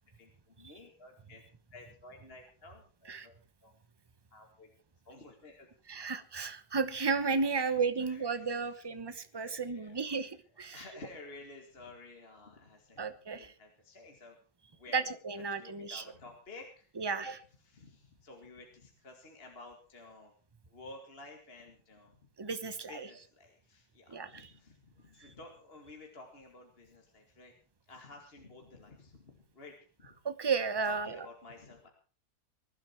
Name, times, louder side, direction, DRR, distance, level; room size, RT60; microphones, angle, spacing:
voice 1, 0.2-1.4 1.7-3.3 3.6-3.7 4.3-4.7 5.0-5.7 5.9-6.1 7.6-8.8 9.3-14.4 14.7-20.3 20.7-22.2 22.9-27.5 27.8-30.2 30.8-31.9, left 3 dB, 40° left, 2 dB, 2.4 m, -53 dB
voice 2, 5.9-10.8 13.0-13.5 14.9-16.0 17.0-17.3 22.4-23.1 24.1-24.5 30.2-31.2, right 5 dB, 20° right, 11 dB, 0.9 m, -33 dB
20.5 x 11.5 x 4.6 m, 0.39 s
omnidirectional pair, 1.7 m